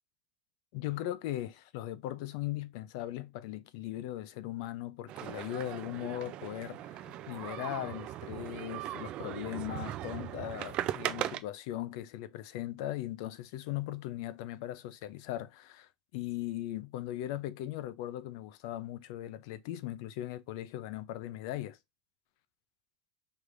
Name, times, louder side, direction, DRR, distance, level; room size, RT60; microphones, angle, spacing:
voice 1, 0.7-21.8, left 14 dB, 65° left, 0.5 m, -39 dB
sound 1, 5.1-11.4, right 13 dB, 40° right, 0.4 m, -39 dB
sound 2, 5.3-5.7 7.0-7.5 7.8-8.0 8.9-9.0 9.4-9.5 9.8-9.9 10.5-10.6, left 2 dB, 10° left, 1.5 m, -61 dB
4.7 x 3.2 x 2.5 m
supercardioid pair, 150°, 3 cm